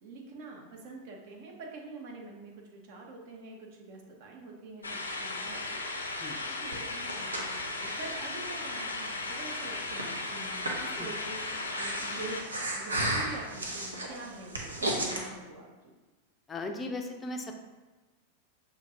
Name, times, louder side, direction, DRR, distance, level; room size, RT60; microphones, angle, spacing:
voice 1, 0.0-11.4 11.7-15.9, right 3 dB, 50° right, 0 dB, 0.9 m, -45 dB
sound 1, 4.8-12.4, left 2 dB, 75° left, 0.5 m, -36 dB
Breathing, 6.7-15.2, right 1 dB, 75° right, 0.6 m, -36 dB
voice 2, 16.5-17.6, left 2 dB, 20° left, 4 dB, 0.5 m, -37 dB
6.3 x 2.8 x 2.7 m, 1.2 s
figure-of-eight pair, 90°, 0 cm